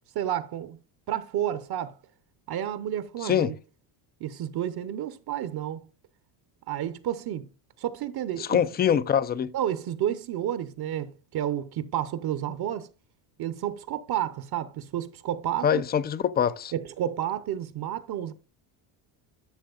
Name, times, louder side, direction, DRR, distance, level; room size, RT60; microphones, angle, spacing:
voice 1, 0.1-0.8 1.1-2.0 2.5-3.5 4.2-5.9 6.7-7.5 7.8-8.6 9.5-12.9 13.4-15.8 16.7-18.3, right 11 dB, 50° right, 0.8 m, -31 dB
voice 2, 3.2-3.5 8.4-9.5 15.6-16.7, left 8 dB, 25° left, 0.3 m, -24 dB
11.5 x 6.2 x 2.4 m
supercardioid pair, 100°, 48 cm